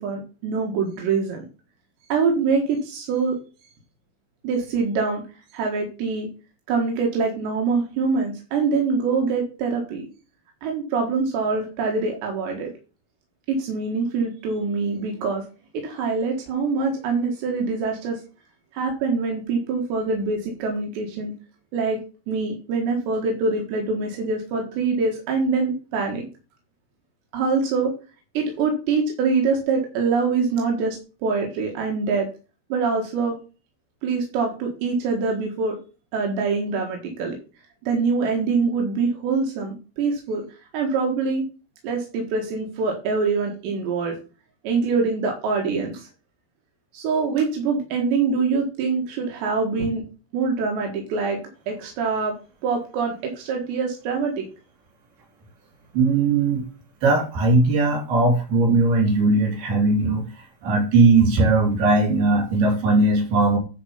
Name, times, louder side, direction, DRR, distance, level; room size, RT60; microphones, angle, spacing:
voice 1, 0.0-1.5 2.1-3.4 4.4-5.2 5.5-6.3 6.7-10.0 10.6-12.7 13.5-15.4 15.8-18.2 18.7-21.3 21.7-22.0 22.3-26.2 27.3-27.9 28.4-31.0 31.2-32.3 32.7-33.4 34.0-35.8 36.1-37.4 37.8-40.4 40.7-41.4 41.8-44.2 44.6-46.1 46.9-50.0 50.3-51.4 51.7-52.3 52.6-54.5, right 4 dB, 85° right, 1 dB, 3.9 m, -24 dB
voice 2, 55.9-56.6 57.0-60.2 60.6-63.6, right 3 dB, 65° right, 0 dB, 4.9 m, -19 dB
11.0 x 4.8 x 5.6 m, 0.34 s
omnidirectional pair, 4.9 m